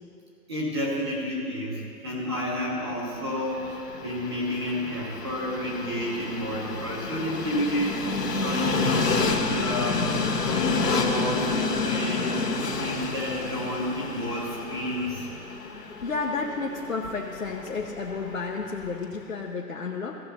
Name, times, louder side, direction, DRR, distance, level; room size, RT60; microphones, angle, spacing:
voice 1, 0.5-12.3 12.8-15.3, equal, 15° right, -6 dB, 1.3 m, -30 dB
Train, 3.1-19.2, left 4 dB, 75° left, 1.8 m, -30 dB
voice 2, 16.0-20.2, left 4 dB, 55° left, -1 dB, 1.0 m, -31 dB
16.5 x 6.5 x 4.2 m, 2.8 s
hypercardioid pair, 175°, 48 cm